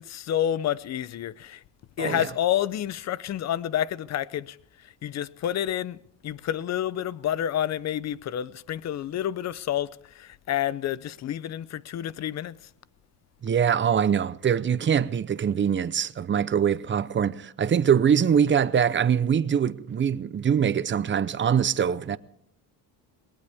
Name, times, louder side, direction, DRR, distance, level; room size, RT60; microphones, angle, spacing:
voice 1, 0.0-1.6 2.0-12.6, left 11 dB, 40° left, 0.6 m, -29 dB
voice 2, 13.4-22.2, right 8 dB, 25° right, 0.7 m, -23 dB
21.5 x 18.0 x 3.5 m
cardioid pair, 135°, 44 cm